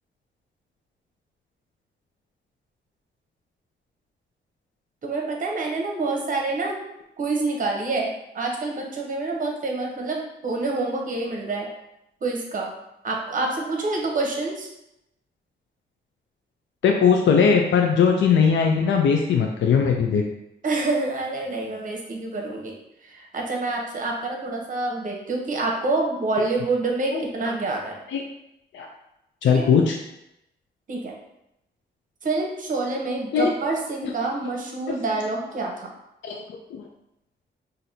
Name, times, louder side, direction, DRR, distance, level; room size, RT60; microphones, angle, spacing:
voice 1, 5.0-6.8 7.2-11.7 12.2-12.7 13.0-14.7 20.6-22.7 23.0-28.0 29.4-29.6 30.9-31.1 32.2-35.9, right 3 dB, 45° right, 0 dB, 0.8 m, -27 dB
voice 2, 16.8-20.2 27.1-27.5 28.1-28.2 28.7-28.9 29.4-30.0 33.3-33.5 34.0-34.1 36.2-36.4 36.7-36.8, left 6 dB, 75° left, 2 dB, 0.4 m, -19 dB
5.8 x 2.6 x 2.7 m, 0.85 s
wide cardioid pair, 170°, 19 cm